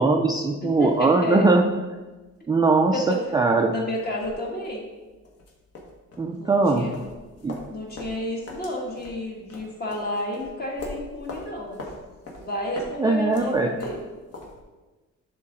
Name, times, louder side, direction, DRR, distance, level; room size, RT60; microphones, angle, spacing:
voice 1, 0.0-1.6 2.5-3.7 6.2-6.9 7.4-7.6 13.0-13.7, right 3 dB, 15° right, 2 dB, 0.3 m, -20 dB
sound 1, 0.6-14.6, left 2 dB, 55° left, 1.5 m, -43 dB
voice 2, 0.6-1.5 2.9-3.3 3.7-4.8 6.3-6.9 7.7-11.8 12.4-14.0, left 1 dB, 35° left, 0 dB, 1.4 m, -31 dB
10.5 x 3.8 x 3.8 m, 1.2 s
cardioid pair, 150°, 29 cm